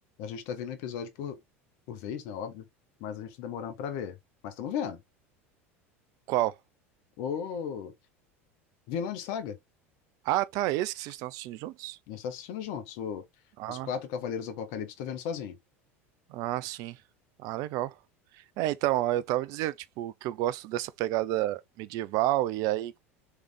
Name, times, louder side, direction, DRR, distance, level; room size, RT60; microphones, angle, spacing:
voice 1, 0.2-1.4 1.9-2.7 3.0-4.2 4.4-5.0 7.2-7.9 8.9-9.6 12.1-13.2 13.7-15.6, left 7 dB, 60° left, 0.9 m, -35 dB
voice 2, 10.3-12.0 13.6-13.9 16.3-17.0 17.4-17.9 18.6-23.0, right 15 dB, 55° right, 0.5 m, -30 dB
3.3 x 3.3 x 3.5 m
hypercardioid pair, 80°, 7 cm